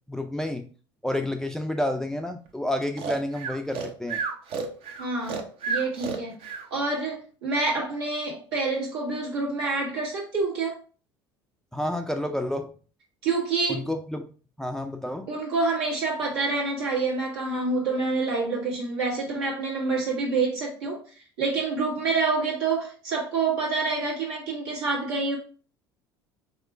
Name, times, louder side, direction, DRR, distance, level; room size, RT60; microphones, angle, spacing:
voice 1, 0.1-0.7 1.0-4.2 11.7-12.7 13.7-14.3 14.6-15.3, left 1 dB, 5° left, 0.4 m, -29 dB
Breathing, 3.0-6.7, right 5 dB, 45° right, 0.7 m, -31 dB
voice 2, 5.0-6.3 6.7-10.8 13.2-13.8 15.3-21.0 21.4-25.4, right 3 dB, 80° right, 1.7 m, -27 dB
3.6 x 3.1 x 3.2 m
figure-of-eight pair, 65°, 13 cm